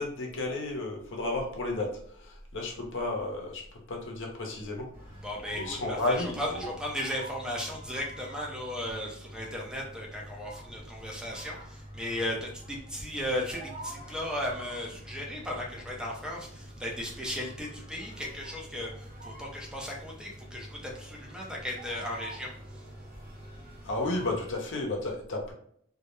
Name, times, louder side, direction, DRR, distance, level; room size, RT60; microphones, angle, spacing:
voice 1, 0.0-1.9 2.2-4.9 5.6-6.6 23.8-25.5, left 2 dB, 60° left, 0 dB, 0.6 m, -32 dB
sound 1, 4.9-24.6, right 1 dB, 40° right, 1.3 m, -46 dB
voice 2, 5.2-22.8, left 1 dB, 5° right, -2 dB, 0.5 m, -36 dB
2.2 x 2.0 x 3.0 m, 0.65 s
head